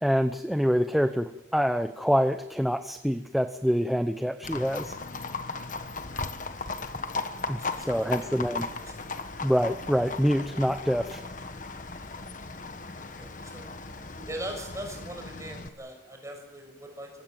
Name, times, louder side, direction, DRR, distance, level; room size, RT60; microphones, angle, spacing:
voice 1, 0.0-4.9 7.5-8.7 9.4-11.2, equal, ahead, 8 dB, 0.8 m, -26 dB
Livestock farm animals working animals, 4.4-15.7, left 3 dB, 45° left, 1.3 m, -37 dB
voice 2, 7.6-8.3 8.8-8.9 13.2-13.8 14.2-17.1, right 1 dB, 15° right, 2 dB, 6.5 m, -40 dB
24.0 x 17.0 x 9.3 m, 0.94 s
head